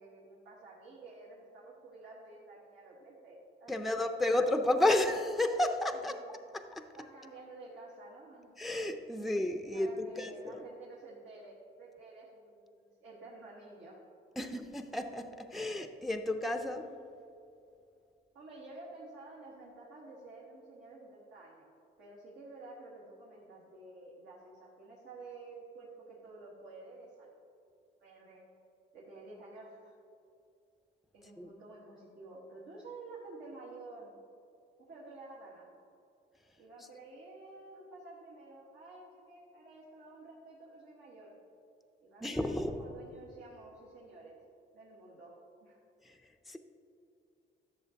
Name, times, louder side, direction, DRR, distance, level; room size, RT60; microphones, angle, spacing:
voice 1, 0.0-4.4 4.7-4.8 5.9-6.2 6.9-8.5 9.2-9.4 9.7-14.0 14.4-14.5 18.3-21.7 22.0-27.3 28.0-28.4 28.9-29.9 31.1-34.1 34.8-35.7 36.6-41.3 42.0-44.3 44.7-45.8, right 2 dB, 80° right, -6 dB, 1.5 m, -51 dB
voice 2, 3.7-6.2 6.5-6.9 8.6-10.6 14.4-17.0 31.4-31.5 42.2-42.8 46.1-46.2 46.5-46.6, left 1 dB, ahead, 7 dB, 0.4 m, -32 dB
11.0 x 6.6 x 2.9 m, 2.6 s
cardioid pair, 90°, 20 cm